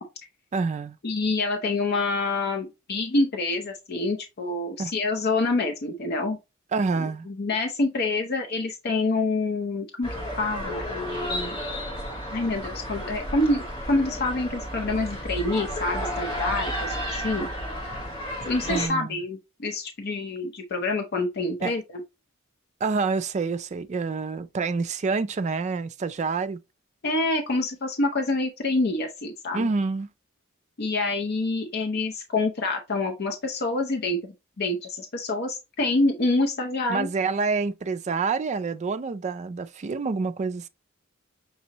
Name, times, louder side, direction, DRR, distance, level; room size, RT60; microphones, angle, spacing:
voice 1, 0.5-1.0 4.8-4.9 6.7-7.3 18.7-19.2 21.6-21.7 22.8-26.6 29.5-30.1 36.9-40.7, right 4 dB, 35° right, 0.3 m, -27 dB
voice 2, 1.0-6.4 7.0-10.1 10.4-11.6 12.3-17.5 18.4-21.8 27.0-29.7 30.8-37.1, left 2 dB, 50° left, 0.6 m, -27 dB
sound 1, 10.0-18.9, equal, 25° left, 1.9 m, -32 dB
6.0 x 2.8 x 2.9 m
head